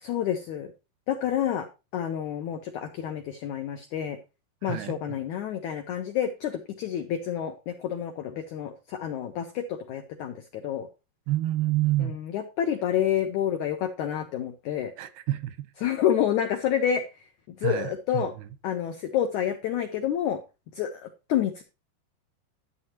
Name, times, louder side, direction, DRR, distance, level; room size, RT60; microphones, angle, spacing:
voice 1, 0.0-0.7 1.1-1.7 1.9-4.2 4.6-10.9 12.0-14.9 15.8-17.0 17.6-18.3 18.6-20.4 20.8-21.6, left 9 dB, 85° left, 1.7 m, -28 dB
voice 2, 4.6-5.2 11.3-12.2 15.0-15.7 17.6-18.5, right 15 dB, 90° right, 2.8 m, -28 dB
11.0 x 8.4 x 2.9 m
omnidirectional pair, 4.6 m